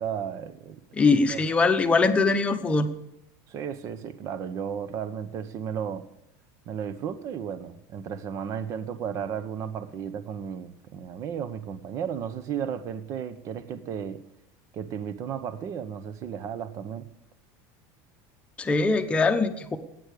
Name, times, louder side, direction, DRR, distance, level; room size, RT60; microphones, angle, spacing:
voice 1, 0.0-0.8 1.3-1.4 3.5-6.1 6.6-14.2 14.7-17.1, right 8 dB, 35° right, 0.9 m, -34 dB
voice 2, 0.9-2.9 18.6-19.8, left 3 dB, 10° left, 1.0 m, -22 dB
16.0 x 9.3 x 6.7 m
cardioid pair, 165°, 9 cm